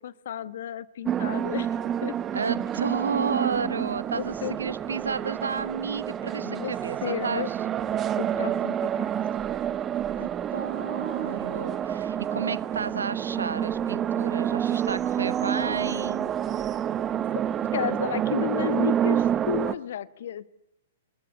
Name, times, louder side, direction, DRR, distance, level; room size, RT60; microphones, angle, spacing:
voice 1, 0.0-2.1 3.6-3.9 4.1-4.6 6.3-6.7 7.0-7.5 8.2-9.1 17.7-20.5, left 10 dB, 60° left, 16 dB, 1.2 m, -32 dB
sound 1, 1.1-19.7, right 9 dB, 25° right, 1.0 m, -28 dB
voice 2, 2.3-7.6 10.2-16.3, right 5 dB, 75° right, 18 dB, 1.0 m, -32 dB
27.5 x 20.5 x 9.9 m, 0.90 s
figure-of-eight pair, 110°, 0 cm